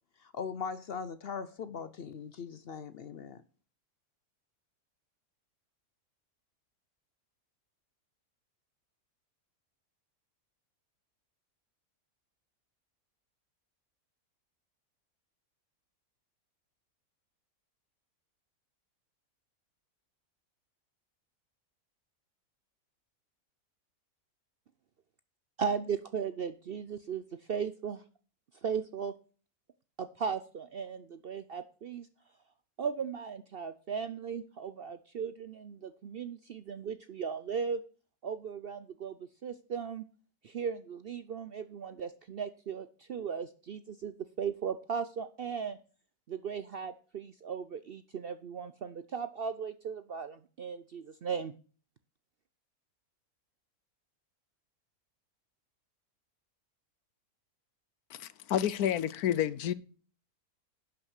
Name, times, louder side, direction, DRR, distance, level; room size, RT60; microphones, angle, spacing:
voice 1, 0.2-3.4, left 6 dB, 55° left, 0.7 m, -40 dB
voice 2, 25.6-27.2 27.5-28.0 28.6-29.1 30.0-32.1 32.8-37.8 38.2-39.2 39.4-40.0 40.4-45.8 46.3-51.5, right 6 dB, 60° right, 0.6 m, -37 dB
voice 3, 58.1-59.7, left 10 dB, 80° left, 1.2 m, -30 dB
11.0 x 6.2 x 6.5 m
omnidirectional pair, 1.6 m